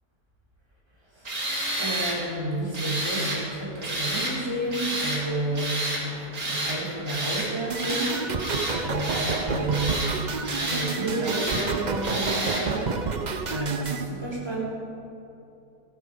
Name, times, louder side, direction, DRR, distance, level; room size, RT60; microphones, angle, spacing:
voice 1, 1.1-1.5 1.8-10.2 10.5-13.2 13.5-14.6, right 1 dB, 15° right, -6 dB, 3.9 m, -31 dB
Tools, 1.2-2.2 2.7-3.4 3.8-4.3 4.7-5.2 5.5-6.0 6.3-6.8 7.1-7.5 7.8-8.1 8.4-9.4 9.7-10.1 10.4-10.9 11.2-11.7 12.0-12.6, right 1 dB, 65° right, 3.3 m, -29 dB
sound 1, 7.7-14.1, right 4 dB, 45° right, 0.6 m, -30 dB
15.5 x 13.5 x 5.2 m, 2.8 s
omnidirectional pair, 1.7 m